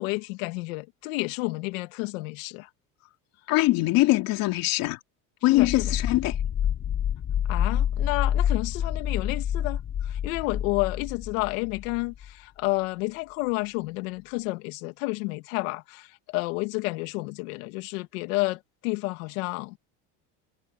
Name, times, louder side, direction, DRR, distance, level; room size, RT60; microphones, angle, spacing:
voice 1, 0.0-2.7 5.5-5.7 7.5-19.8, left 23 dB, 90° left, 2.5 m, -30 dB
voice 2, 3.5-5.0 5.4-6.4, left 18 dB, 60° left, 3.3 m, -22 dB
sound 1, 5.6-12.3, left 9 dB, 35° left, 6.0 m, -28 dB
cardioid pair, 135°, 39 cm